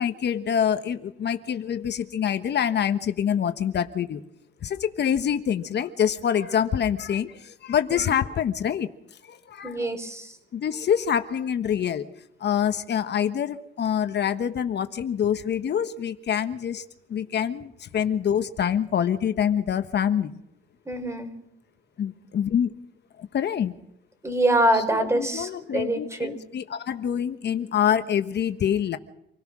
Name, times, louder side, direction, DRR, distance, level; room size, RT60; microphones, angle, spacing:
voice 1, 0.0-4.2 4.6-8.9 9.2-9.9 10.5-12.1 12.4-16.8 17.1-20.4 22.0-22.7 23.2-23.7 24.7-29.0, left 9 dB, 60° left, 9 dB, 1.3 m, -26 dB
voice 2, 9.6-10.3 20.9-21.3 24.2-26.4, right 1 dB, 15° right, 8 dB, 4.5 m, -25 dB
27.0 x 17.5 x 6.2 m, 0.80 s
cardioid pair, 90°, 20 cm